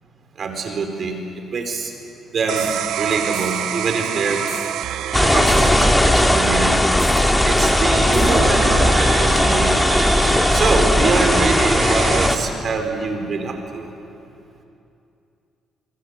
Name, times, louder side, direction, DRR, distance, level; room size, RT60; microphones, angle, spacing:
voice 1, 0.4-1.2 1.5-1.9 2.3-2.7 2.9-4.4 5.1-6.8 7.4-9.8 10.5-13.9, right 4 dB, 50° right, 4 dB, 4.6 m, -24 dB
sound 1, 2.5-12.3, right 11 dB, 80° right, 0.7 m, -28 dB
sound 2, 2.6-2.8 3.3-3.7 4.5-4.8 5.5-5.8 7.0-7.3 8.1-8.5, left 4 dB, 30° left, 3.9 m, -38 dB
sound 3, 5.1-12.4, left 1 dB, 10° left, 2.2 m, -17 dB
26.0 x 23.0 x 8.2 m, 2.6 s
cardioid pair, 90°, 0 cm